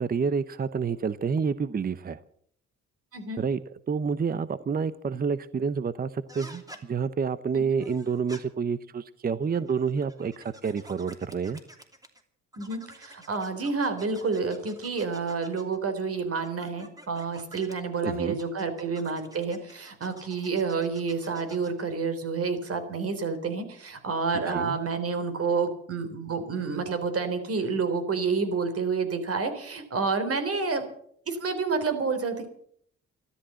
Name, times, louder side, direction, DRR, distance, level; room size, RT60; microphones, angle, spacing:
voice 1, 0.0-2.2 3.4-3.6 3.9-11.6 18.0-18.4 24.5-24.8, right 6 dB, 30° right, 16 dB, 0.7 m, -28 dB
sound 1, 6.3-6.8 7.8-8.4 9.4-12.2 12.5-15.8 16.4-17.8 18.4-21.8, right 1 dB, 10° right, 2.9 m, -49 dB
voice 2, 12.6-30.8 31.3-32.5, right 4 dB, 50° right, 9 dB, 3.6 m, -29 dB
14.0 x 13.0 x 7.6 m, 0.63 s
cardioid pair, 90°, 30 cm